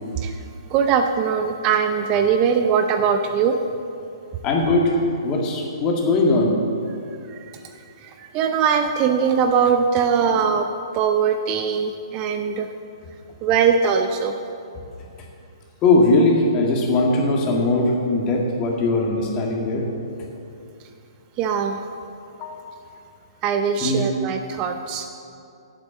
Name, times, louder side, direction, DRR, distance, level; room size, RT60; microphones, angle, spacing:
voice 1, 0.7-3.6 7.3-7.5 8.0-10.7 10.9-12.7 13.4-14.3 21.4-21.8 23.4-25.1, right 6 dB, 30° right, 6 dB, 0.6 m, -21 dB
voice 2, 4.4-6.6 15.8-19.9 22.4-22.7 23.8-24.0, left 2 dB, 25° left, 0 dB, 1.9 m, -20 dB
8.6 x 8.3 x 7.3 m, 2.6 s
figure-of-eight pair, 125°, 3 cm